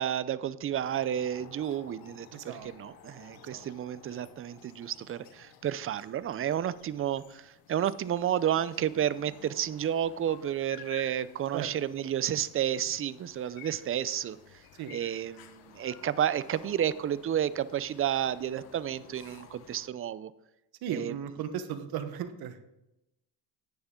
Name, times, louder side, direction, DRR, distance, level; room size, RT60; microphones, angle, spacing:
voice 1, 0.0-14.4 14.9-20.3 20.9-21.1, right 10 dB, 35° right, 16 dB, 0.5 m, -31 dB
sound 1, 0.8-19.9, left 9 dB, 65° left, 1.2 m, -53 dB
voice 2, 2.3-2.7 3.3-3.7 11.5-11.7 14.7-14.9 20.8-22.6, right 8 dB, 70° right, 10 dB, 1.2 m, -36 dB
10.5 x 9.6 x 3.8 m, 0.91 s
cardioid pair, 105°, 39 cm